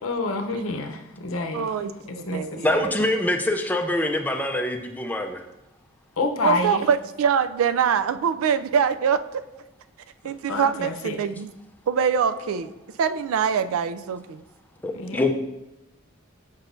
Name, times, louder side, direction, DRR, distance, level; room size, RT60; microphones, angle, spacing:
voice 1, 0.0-2.9 6.2-6.9 10.2-11.3 14.9-15.2, left 3 dB, 80° left, 5 dB, 0.7 m, -29 dB
voice 2, 1.5-2.9 6.4-9.4 10.2-11.5 11.9-12.7 13.0-14.4, right 7 dB, 85° right, 11 dB, 0.4 m, -24 dB
voice 3, 2.6-5.4 14.8-15.3, left 1 dB, 10° left, 4 dB, 0.5 m, -24 dB
8.0 x 5.5 x 2.6 m, 0.95 s
head